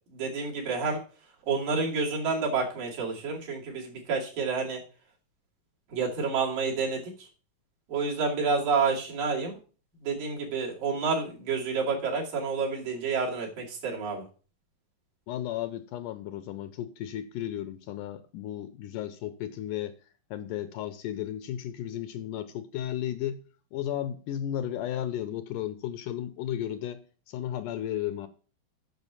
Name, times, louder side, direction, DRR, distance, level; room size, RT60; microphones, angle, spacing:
voice 1, 0.1-1.0 1.5-4.8 5.9-7.3 7.9-9.5 10.0-14.2, right 4 dB, 70° right, -2 dB, 4.2 m, -29 dB
voice 2, 15.3-19.9 20.3-23.4 23.7-27.0 27.3-28.3, left 11 dB, 80° left, 11 dB, 2.1 m, -34 dB
8.1 x 6.4 x 6.8 m, 0.38 s
omnidirectional pair, 4.1 m